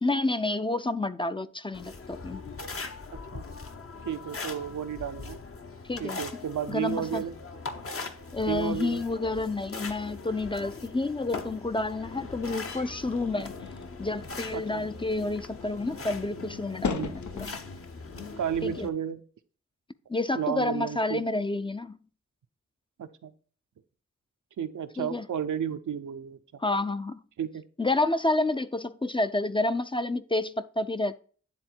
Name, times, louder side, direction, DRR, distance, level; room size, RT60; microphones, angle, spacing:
voice 1, 0.0-2.4 5.9-6.2 6.7-7.2 8.3-13.5 14.0-17.5 18.6-18.9 20.1-22.0 25.0-25.3 26.6-27.2 27.8-31.2, left 2 dB, 20° left, 0.4 m, -29 dB
sound 1, 1.7-18.9, left 4 dB, 50° left, 0.8 m, -41 dB
voice 2, 4.0-5.4 6.0-7.3 8.5-9.0 14.5-14.9 16.9-17.1 18.4-19.2 20.3-21.3 23.0-23.3 24.6-26.4 27.4-27.6, right 8 dB, 90° right, 0.6 m, -32 dB
sound 2, 12.7-17.8, left 6 dB, 75° left, 0.6 m, -39 dB
9.9 x 3.7 x 4.4 m
cardioid pair, 55°, 29 cm